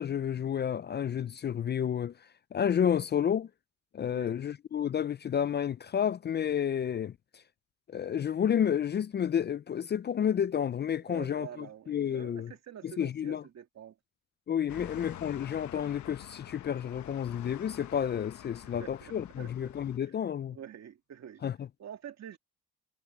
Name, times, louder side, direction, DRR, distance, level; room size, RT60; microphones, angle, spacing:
voice 1, 0.0-2.1 2.5-3.5 3.9-7.4 7.9-12.5 12.8-13.4 14.5-20.6 21.4-21.7, left 8 dB, 35° left, 0.4 m, -30 dB
voice 2, 11.1-13.9 14.7-14.8 18.6-19.5 20.0-20.1 20.5-21.4 21.8-22.4, right 9 dB, 60° right, 2.4 m, -47 dB
sound 1, 14.7-20.0, left 12 dB, 70° left, 1.0 m, -47 dB
cardioid pair, 90°, 30 cm